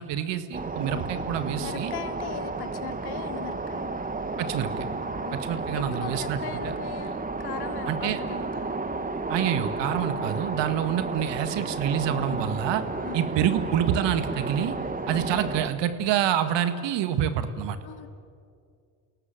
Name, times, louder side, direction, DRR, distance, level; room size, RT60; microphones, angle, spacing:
voice 1, 0.0-1.9 4.4-4.9 5.3-6.7 7.9-8.2 9.3-12.8 13.1-14.8 15.1-17.8, right 10 dB, 60° right, 10 dB, 1.9 m, -27 dB
sound 1, 0.5-15.7, right 3 dB, 15° right, 1.8 m, -32 dB
voice 2, 1.6-4.0 5.3-8.7 13.0-13.3 15.1-15.4 17.8-18.1, left 8 dB, 50° left, 9 dB, 2.0 m, -39 dB
29.5 x 18.0 x 7.7 m, 2.3 s
hypercardioid pair, 60°, 49 cm